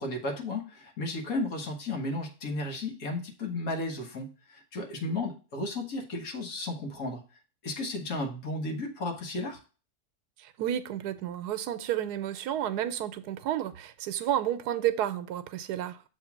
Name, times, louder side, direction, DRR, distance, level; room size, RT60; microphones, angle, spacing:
voice 1, 0.0-7.2 7.6-9.6, left 2 dB, 65° left, 1.6 m, -34 dB
voice 2, 10.4-16.0, right 11 dB, 90° right, 1.2 m, -31 dB
7.1 x 3.1 x 5.8 m
omnidirectional pair, 1.7 m